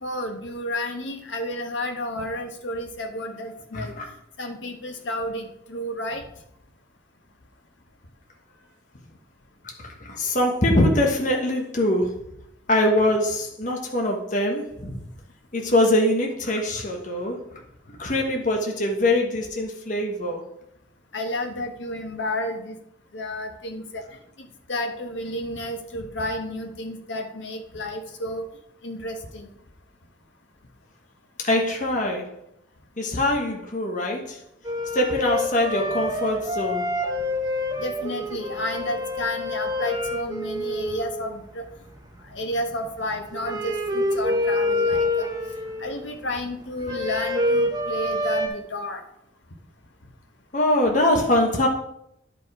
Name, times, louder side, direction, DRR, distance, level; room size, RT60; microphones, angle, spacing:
voice 1, 0.0-3.9 4.4-6.2 21.1-22.8 23.1-24.0 24.4-28.5 28.8-29.5 37.8-41.6 42.3-45.3 45.8-49.0, left 1 dB, 80° left, 4 dB, 1.3 m, -31 dB
voice 2, 3.7-4.1 9.8-12.1 12.7-15.0 15.5-17.4 18.0-20.4 31.4-32.3 33.0-34.4 34.9-36.9 50.5-51.7, left 1 dB, 40° left, 1 dB, 1.1 m, -23 dB
sound 1, 34.6-48.5, left 1 dB, 20° right, 0.9 m, -27 dB
10.5 x 5.1 x 4.8 m, 0.79 s
head